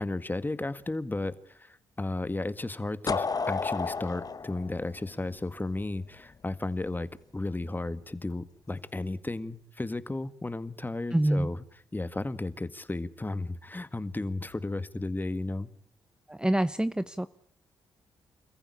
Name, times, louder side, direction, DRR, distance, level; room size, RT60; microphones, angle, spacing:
voice 1, 0.0-11.6 11.9-15.7, left 2 dB, 20° left, 13 dB, 1.8 m, -34 dB
sound 1, 3.1-5.9, left 4 dB, 40° left, 1.1 m, -32 dB
voice 2, 11.1-11.5 16.3-17.3, right 1 dB, 10° right, 13 dB, 0.9 m, -26 dB
29.0 x 14.5 x 8.6 m, 0.64 s
supercardioid pair, 50°, 10 cm